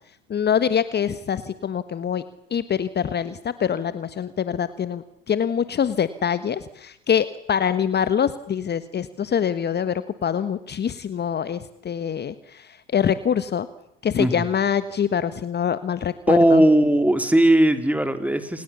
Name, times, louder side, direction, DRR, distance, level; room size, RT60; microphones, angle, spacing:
voice 1, 0.3-2.2 2.5-13.7 14.0-16.7, left 8 dB, 35° left, 13 dB, 1.4 m, -24 dB
voice 2, 16.3-18.6, right 1 dB, 5° right, 9 dB, 3.3 m, -18 dB
28.0 x 28.0 x 7.1 m, 0.82 s
hypercardioid pair, 70°, 30 cm